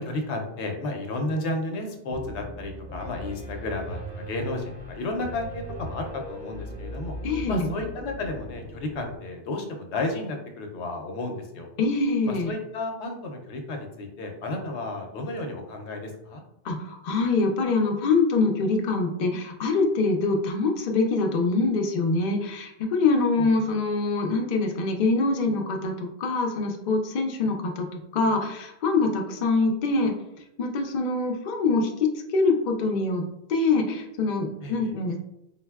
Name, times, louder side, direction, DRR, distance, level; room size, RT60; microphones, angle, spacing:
voice 1, 0.0-7.1 7.5-11.7 12.2-16.4 23.4-23.5 34.6-34.9, left 2 dB, 80° left, 3 dB, 0.9 m, -32 dB
Piano, 2.1-9.2, equal, 30° right, 0.5 m, -39 dB
voice 2, 7.2-7.7 11.8-12.5 16.6-27.9 28.1-30.1 30.6-31.9 32.3-33.2 33.5-35.2, left 3 dB, 55° left, 2 dB, 0.5 m, -24 dB
3.9 x 2.1 x 2.2 m, 0.84 s
omnidirectional pair, 1.1 m